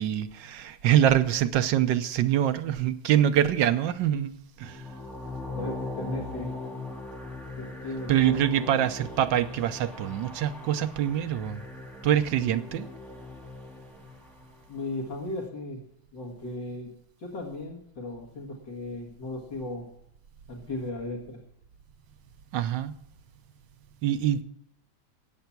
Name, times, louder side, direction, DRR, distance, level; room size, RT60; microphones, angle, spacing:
voice 1, 0.0-4.3 4.6-4.8 8.1-11.6 12.0-12.9 22.5-22.9 24.0-24.4, right 11 dB, 70° right, 1.4 m, -24 dB
sound 1, 4.6-14.7, left 2 dB, ahead, 2.1 m, -39 dB
voice 2, 5.5-6.5 7.6-8.4 14.7-15.8 16.1-16.9 17.2-19.9 20.5-21.4, left 2 dB, 60° left, 2.6 m, -36 dB
17.5 x 7.9 x 5.9 m
omnidirectional pair, 2.2 m